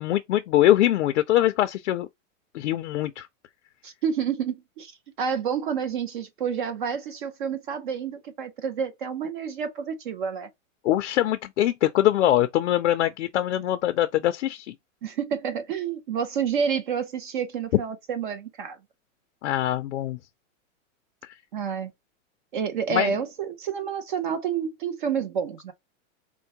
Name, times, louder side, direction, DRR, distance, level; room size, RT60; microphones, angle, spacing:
voice 1, 0.0-2.1 2.5-3.3 10.8-14.7 19.4-20.2 22.9-23.1, left 13 dB, 65° left, 0.5 m, -23 dB
voice 2, 3.8-10.5 15.0-18.8 21.5-21.9 22.5-25.7, right 7 dB, 40° right, 0.6 m, -29 dB
4.4 x 2.1 x 2.7 m
supercardioid pair, 170°, 39 cm